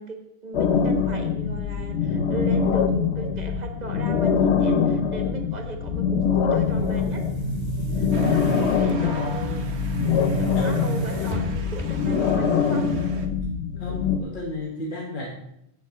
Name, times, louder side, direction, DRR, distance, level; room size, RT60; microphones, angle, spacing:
voice 1, 0.0-7.2 7.9-8.3 8.6-10.0 10.4-12.9, right 4 dB, 40° right, 4 dB, 1.5 m, -37 dB
sound 1, 0.5-14.2, left 6 dB, 80° left, 1.0 m, -24 dB
Boom, 6.5-12.3, right 8 dB, 25° right, 1.6 m, -33 dB
Motor vehicle (road) / Siren, 8.1-13.3, right 5 dB, 75° right, 1.2 m, -43 dB
voice 2, 8.3-9.7 10.5-10.7 13.8-15.3, left 2 dB, 50° left, 0 dB, 1.2 m, -33 dB
8.0 x 7.6 x 5.6 m, 0.80 s
omnidirectional pair, 1.1 m